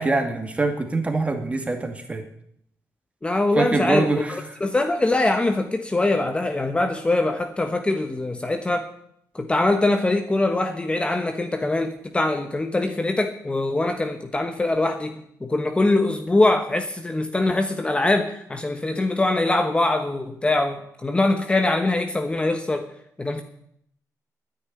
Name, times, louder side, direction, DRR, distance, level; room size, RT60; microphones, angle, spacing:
voice 1, 0.0-2.2 3.6-4.3, right 2 dB, 20° right, 5 dB, 2.4 m, -24 dB
voice 2, 3.2-8.9 9.3-22.9 23.2-23.4, left 2 dB, 15° left, 6 dB, 1.2 m, -23 dB
10.0 x 9.9 x 9.9 m, 0.70 s
cardioid pair, 110°, 6 cm